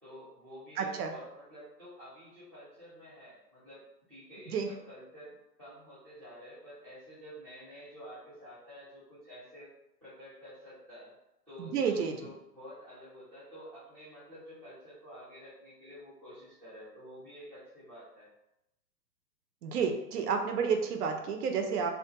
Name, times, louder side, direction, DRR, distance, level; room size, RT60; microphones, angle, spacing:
voice 1, 0.0-3.8 4.1-9.7 10.0-11.2 11.5-18.3, equal, 5° left, -12 dB, 0.5 m, -50 dB
voice 2, 0.8-1.1 4.5-4.7 11.6-12.1 19.6-21.9, right 6 dB, 70° right, 5 dB, 0.5 m, -30 dB
2.2 x 2.1 x 2.8 m, 0.86 s
hypercardioid pair, 130°, 49 cm